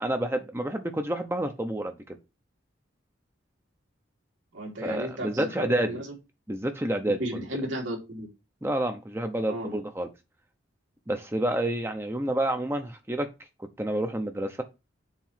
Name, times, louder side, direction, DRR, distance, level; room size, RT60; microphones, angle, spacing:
voice 1, 0.0-2.2 4.8-6.0 6.5-7.3 8.6-10.1 11.1-13.3 13.6-14.6, right 1 dB, 10° right, 0.7 m, -29 dB
voice 2, 4.5-6.1 7.2-8.3 9.5-9.8, right 1 dB, 80° right, 2.8 m, -34 dB
7.3 x 3.1 x 5.6 m
head